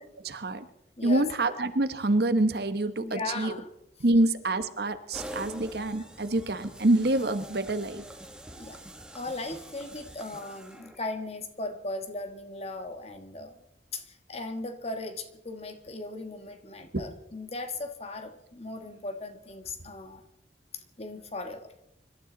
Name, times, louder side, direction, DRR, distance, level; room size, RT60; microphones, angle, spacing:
voice 1, 0.2-0.7 1.0-3.6 4.0-8.0 16.9-17.1, right 2 dB, 65° right, 10 dB, 1.2 m, -26 dB
voice 2, 1.0-1.3 3.0-3.7 4.1-4.2 8.6-8.8 9.1-13.6 13.9-20.2 20.7-21.7, left 2 dB, 35° left, 8 dB, 1.7 m, -38 dB
sound 1, 5.1-11.2, right 1 dB, 5° right, 1.4 m, -45 dB
25.0 x 12.5 x 4.0 m, 0.81 s
head